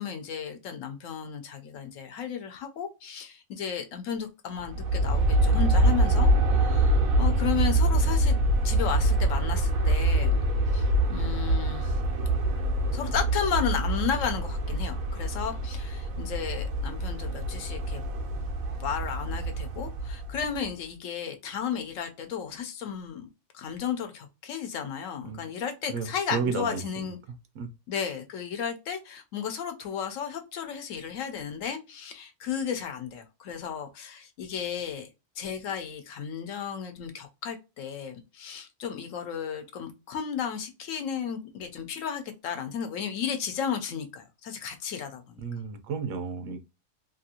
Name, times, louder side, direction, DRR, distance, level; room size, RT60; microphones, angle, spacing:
voice 1, 0.0-8.3 8.6-10.4 10.7-11.9 12.9-18.0 18.8-23.3 23.5-27.2 27.9-35.1 35.4-45.4, left 7 dB, 75° left, 1.0 m, -34 dB
Aircraft, 4.6-20.7, right 1 dB, 90° right, 1.1 m, -25 dB
voice 2, 25.9-27.1 27.5-27.7 45.4-46.6, right 5 dB, 70° right, 0.9 m, -32 dB
2.9 x 2.5 x 2.8 m
omnidirectional pair, 1.4 m